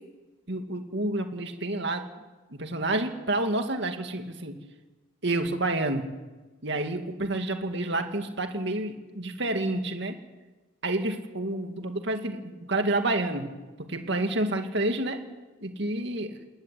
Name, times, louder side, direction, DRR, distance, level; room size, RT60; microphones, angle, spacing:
voice 1, 0.5-2.0 2.5-4.6 5.2-6.1 6.6-10.2 10.8-13.5 13.8-15.2 15.6-16.3, right 2 dB, 60° right, 5 dB, 2.3 m, -29 dB
20.5 x 17.0 x 10.0 m, 1.2 s
head